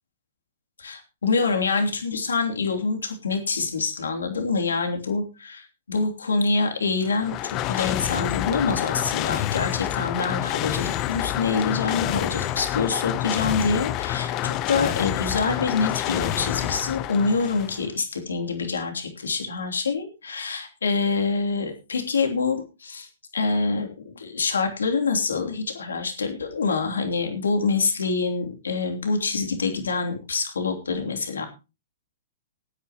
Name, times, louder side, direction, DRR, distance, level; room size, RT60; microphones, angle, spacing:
voice 1, 0.8-23.1 23.3-31.5, left 4 dB, 90° left, 4 dB, 3.1 m, -26 dB
sound 1, 7.0-17.9, left 14 dB, 35° left, 0.9 m, -28 dB
19.5 x 9.6 x 3.0 m, 0.29 s
hypercardioid pair, 130°, 0 cm